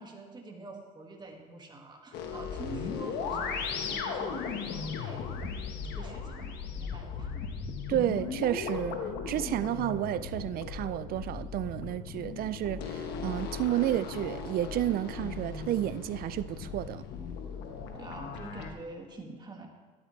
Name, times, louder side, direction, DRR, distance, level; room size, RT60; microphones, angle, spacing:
voice 1, 0.0-5.3 6.0-7.5 17.9-19.7, right 3 dB, 25° right, 1.9 m, -46 dB
sound 1, 2.1-18.7, left 5 dB, 85° left, 1.2 m, -37 dB
voice 2, 7.9-9.0 9.3-17.0, right 13 dB, 60° right, 0.5 m, -31 dB
12.0 x 11.5 x 3.2 m
cardioid pair, 110°, 17 cm